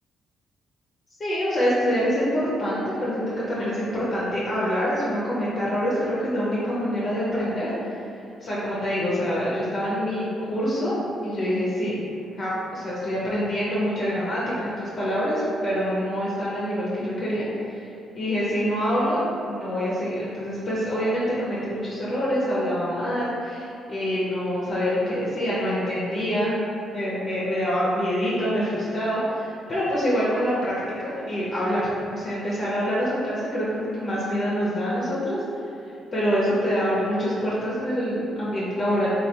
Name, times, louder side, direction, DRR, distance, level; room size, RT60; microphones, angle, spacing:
voice 1, 1.2-11.0 11.2-12.0 12.4-26.6 26.9-39.1, equal, 40° left, -8 dB, 0.6 m, -26 dB
3.2 x 2.3 x 2.8 m, 2.6 s
cardioid pair, 90°, 0 cm